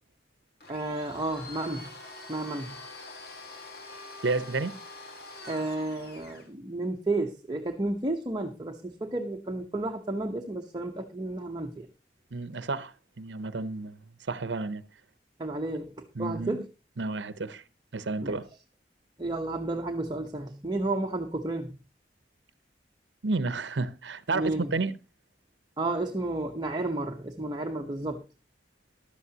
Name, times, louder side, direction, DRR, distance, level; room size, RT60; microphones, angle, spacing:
Domestic sounds home sounds, 0.6-6.5, left 2 dB, 60° left, 2.3 m, -45 dB
voice 1, 0.7-1.9 2.3-2.8 5.4-11.9 15.4-16.7 18.2-18.4 19.2-21.8 24.3-24.7 25.8-28.2, right 2 dB, 25° right, 0.9 m, -32 dB
voice 2, 4.2-4.8 12.3-14.0 14.3-14.8 16.2-16.6 17.0-17.6 17.9-18.5 23.2-25.0, right 3 dB, 85° right, 0.8 m, -31 dB
14.5 x 11.5 x 2.8 m
head